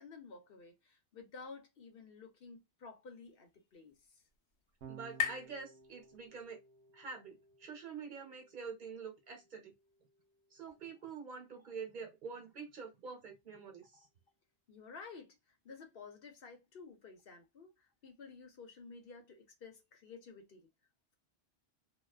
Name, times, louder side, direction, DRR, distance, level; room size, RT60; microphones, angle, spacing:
voice 1, 0.0-4.2 10.7-10.8 14.7-20.7, left 4 dB, 65° left, 0.9 m, -53 dB
sound 1, 2.9-6.6, left 7 dB, 90° left, 0.9 m, -43 dB
Electric guitar / Bass guitar, 4.8-11.2, right 6 dB, 85° right, 0.9 m, -59 dB
voice 2, 4.9-6.6 6.9-9.7 10.5-14.1, right 5 dB, 50° right, 1.1 m, -47 dB
2.4 x 2.3 x 2.3 m
omnidirectional pair, 1.1 m